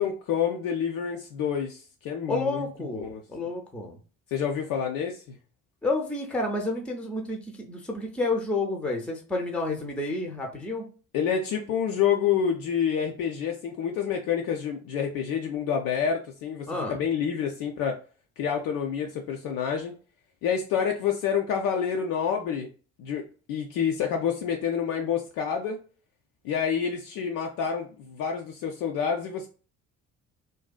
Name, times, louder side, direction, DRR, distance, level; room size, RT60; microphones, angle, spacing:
voice 1, 0.0-3.2 4.3-5.4 11.1-18.0 18.4-19.9 20.4-22.7 23.0-25.8 26.4-29.5, left 7 dB, 55° left, 2 dB, 0.5 m, -28 dB
voice 2, 2.3-4.0 5.8-7.4 7.7-10.9 16.7-17.0, left 2 dB, 5° left, 2 dB, 0.6 m, -30 dB
2.6 x 2.3 x 2.2 m, 0.38 s
figure-of-eight pair, 45°, 42 cm